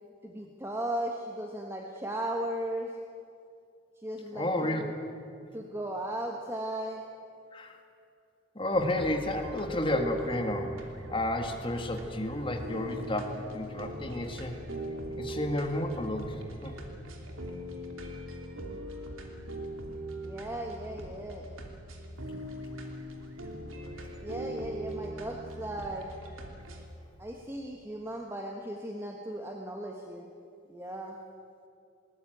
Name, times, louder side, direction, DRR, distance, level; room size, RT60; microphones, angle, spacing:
voice 1, 0.2-2.9 4.0-4.9 5.5-7.0 20.2-21.5 24.2-26.1 27.2-30.3 30.7-31.2, right 1 dB, 10° right, 1 dB, 1.3 m, -36 dB
voice 2, 4.3-4.9 7.5-7.7 8.6-10.7 11.1-14.6 15.1-16.7, left 1 dB, 25° left, 4 dB, 1.8 m, -31 dB
sound 1, 8.7-26.8, right 1 dB, 80° right, 2.9 m, -41 dB
20.5 x 19.5 x 9.2 m, 2.5 s
head